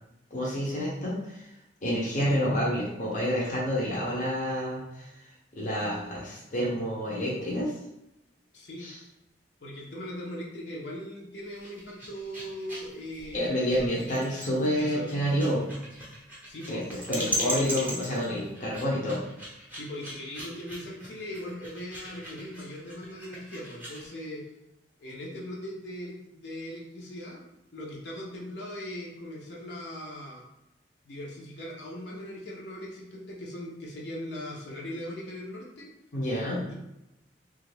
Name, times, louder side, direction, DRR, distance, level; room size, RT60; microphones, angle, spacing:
voice 1, 0.3-1.5 1.8-5.1 5.5-7.7 8.8-9.0 13.3-15.6 16.7-16.8 17.1-19.2 36.1-36.7, equal, 45° left, -4 dB, 0.7 m, -28 dB
voice 2, 8.5-8.9 9.6-14.3 14.8-15.3 16.5-16.8 17.2-18.0 19.7-24.4 25.0-27.4 27.7-30.4 31.0-35.9 36.7-36.8, equal, 70° left, -3 dB, 0.8 m, -39 dB
sound 1, 11.4-24.1, right 1 dB, 10° right, 0.7 m, -38 dB
3.1 x 2.4 x 3.2 m, 0.90 s
head